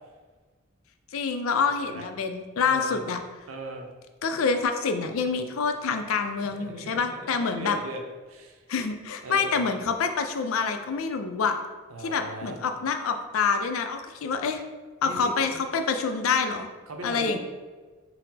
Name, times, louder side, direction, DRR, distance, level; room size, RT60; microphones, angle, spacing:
voice 1, 1.1-3.2 4.2-7.8 8.7-11.6 12.0-14.6 15.0-16.7 17.0-17.4, left 5 dB, 80° left, 6 dB, 0.4 m, -27 dB
voice 2, 1.6-2.1 2.6-3.0 3.5-3.9 6.4-8.0 8.3-8.6 9.2-9.6 11.9-12.6 15.0-15.6 16.9-17.4, right 2 dB, 80° right, 3 dB, 0.6 m, -38 dB
4.2 x 2.0 x 4.0 m, 1.4 s
head